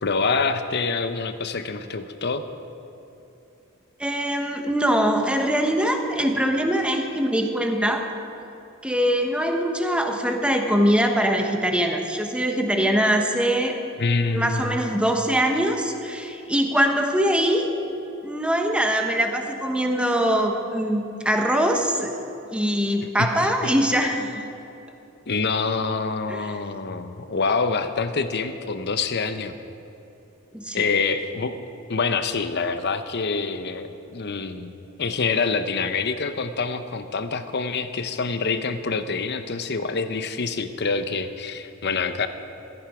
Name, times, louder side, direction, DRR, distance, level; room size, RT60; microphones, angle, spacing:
voice 1, 0.0-2.4 14.0-14.8 23.2-23.7 25.3-29.5 30.7-31.6 31.9-34.7 35.0-42.3, left 4 dB, 50° left, 9 dB, 0.8 m, -26 dB
voice 2, 4.0-8.0 8.8-13.8 14.3-17.8 18.2-22.2 22.5-24.5 26.3-26.5 30.5-30.9, equal, 5° right, 3 dB, 1.1 m, -23 dB
17.0 x 14.0 x 4.9 m, 2.9 s
head